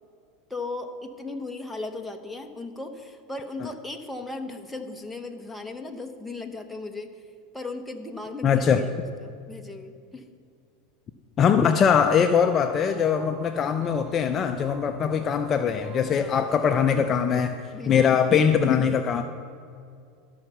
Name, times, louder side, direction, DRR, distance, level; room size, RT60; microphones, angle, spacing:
voice 1, 0.5-7.1 7.5-10.3 16.1-16.6 17.7-18.1, left 2 dB, 5° left, 3 dB, 1.1 m, -37 dB
voice 2, 8.4-8.8 11.4-17.6 17.9-19.2, left 7 dB, 35° left, 7 dB, 0.5 m, -22 dB
sound 1, 12.0-17.2, equal, 25° right, 2.7 m, -45 dB
13.0 x 5.6 x 6.9 m, 2.4 s
supercardioid pair, 115°, 0 cm